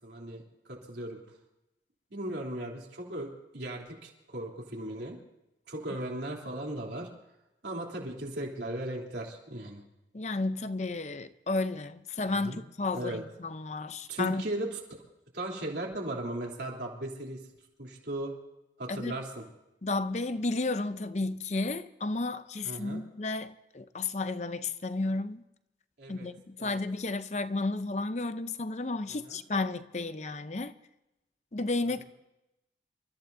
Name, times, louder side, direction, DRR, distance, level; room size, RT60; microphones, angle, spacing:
voice 1, 0.0-1.2 2.1-3.3 3.5-5.2 5.7-7.1 7.6-9.8 12.4-12.6 12.9-13.2 14.1-14.8 15.3-17.4 17.8-18.3 18.8-19.4 22.6-23.0 26.0-26.3 26.6-26.8 29.1-29.4, right 1 dB, 70° right, 3.3 m, -37 dB
voice 2, 10.1-14.5 18.9-19.1 19.8-25.4 26.1-30.7 31.5-32.1, left 3 dB, 40° left, 0.7 m, -32 dB
28.0 x 14.0 x 2.7 m
head